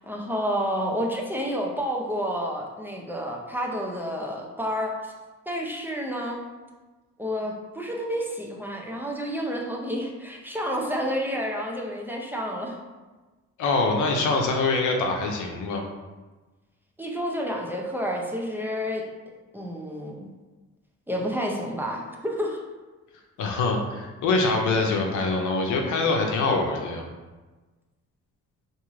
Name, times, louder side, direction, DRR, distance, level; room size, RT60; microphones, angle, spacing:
voice 1, 0.0-5.1 5.5-6.4 7.2-12.8 17.0-19.0 19.5-20.3 21.1-22.6, equal, 5° right, -1 dB, 0.5 m, -30 dB
voice 2, 13.6-15.8 23.4-27.0, left 3 dB, 80° left, 2 dB, 0.7 m, -24 dB
3.6 x 2.7 x 3.0 m, 1.2 s
cardioid pair, 90°, 30 cm